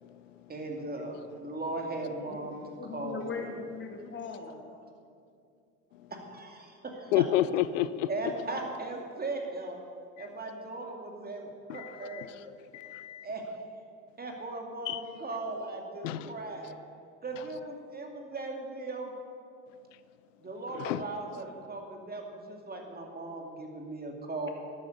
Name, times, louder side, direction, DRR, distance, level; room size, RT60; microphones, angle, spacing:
voice 1, 0.5-2.6 2.9-3.5 6.1-7.2 8.1-9.8 10.2-11.5 11.7-12.3 13.2-13.6 14.2-16.8 17.2-19.1 20.4-24.5, right 2 dB, 25° right, 2.5 m, -38 dB
voice 2, 2.7-4.6, left 5 dB, 30° left, 2.0 m, -39 dB
voice 3, 7.1-8.1 10.2-10.3 11.7-12.3 12.7-13.3 14.9-15.0 16.0-16.3 20.7-21.0, left 13 dB, 80° left, 0.6 m, -30 dB
12.5 x 9.0 x 6.6 m
hypercardioid pair, 70°, 37 cm